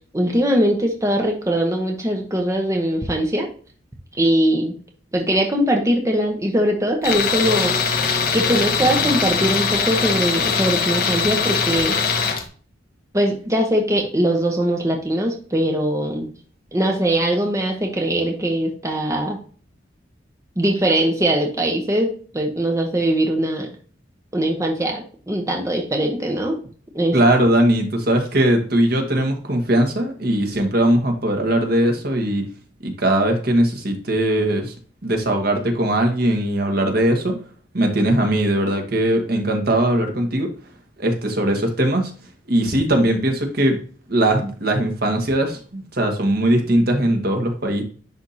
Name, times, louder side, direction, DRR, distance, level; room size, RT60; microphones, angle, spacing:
voice 1, 0.1-3.5 4.2-4.7 5.1-7.8 8.3-12.0 13.1-16.3 16.7-19.4 20.6-23.7 24.3-26.6 26.9-27.2, right 1 dB, 15° right, 1 dB, 1.0 m, -21 dB
Tools, 7.0-12.4, left 5 dB, 50° left, 1.1 m, -21 dB
voice 2, 27.1-32.4 32.8-34.7 35.0-37.3 37.7-40.5 41.0-42.1 42.5-43.8 44.1-47.8, right 1 dB, 55° right, 3 dB, 1.4 m, -20 dB
10.5 x 3.6 x 2.8 m, 0.42 s
head